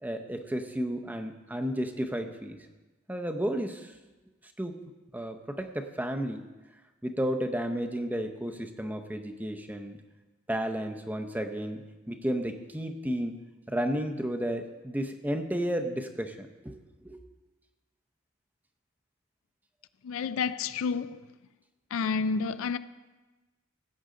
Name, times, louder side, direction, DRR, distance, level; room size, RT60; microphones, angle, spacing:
voice 1, 0.0-2.6 3.1-3.9 4.6-4.8 5.1-6.4 7.0-10.0 10.5-11.8 12.1-13.4 13.7-16.8 17.0-17.2, equal, 10° right, 0.6 m, -32 dB
voice 2, 20.0-21.3 21.9-22.8, left 5 dB, 80° left, 0.4 m, -30 dB
16.5 x 7.8 x 3.8 m
head